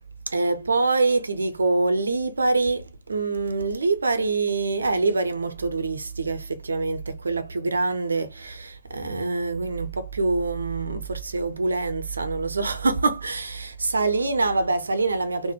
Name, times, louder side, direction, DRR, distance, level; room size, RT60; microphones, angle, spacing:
voice 1, 0.3-2.8 3.1-15.5, right 3 dB, 75° right, 0.9 m, -25 dB
4.1 x 2.5 x 2.8 m
figure-of-eight pair, 120°, 0 cm